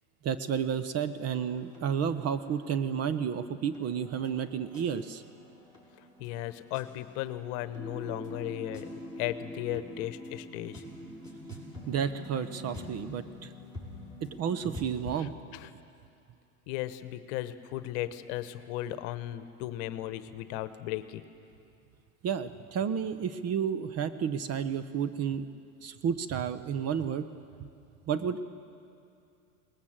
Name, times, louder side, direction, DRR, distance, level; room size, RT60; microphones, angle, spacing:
voice 1, 0.2-5.2 11.9-13.5 14.4-15.3 22.2-25.5 25.8-27.3 28.1-28.4, right 7 dB, 35° right, 12 dB, 0.9 m, -31 dB
sound 1, 1.2-15.2, left 1 dB, 10° right, 5.3 m, -46 dB
voice 2, 6.2-8.9 9.2-10.8 11.4-11.9 12.8-12.9 15.2-15.7 16.7-21.2, left 14 dB, 55° left, 12 dB, 1.1 m, -36 dB
21.5 x 19.0 x 7.5 m, 2.5 s
hypercardioid pair, 110°, 45 cm